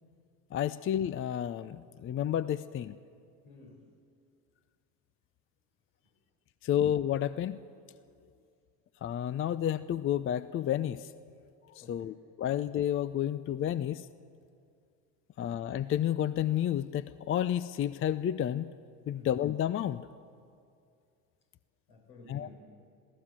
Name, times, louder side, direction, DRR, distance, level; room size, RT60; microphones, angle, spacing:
voice 1, 0.5-3.0 6.6-7.6 9.0-11.1 11.7-14.1 15.4-18.7 19.1-20.0 22.3-22.5, left 10 dB, 30° left, 16 dB, 0.5 m, -31 dB
voice 2, 3.4-3.9 6.0-6.1 11.8-12.2 19.1-19.3 21.9-22.5, left 2 dB, 75° left, 2 dB, 5.1 m, -54 dB
22.5 x 16.0 x 7.5 m, 2.3 s
hypercardioid pair, 75°, 45 cm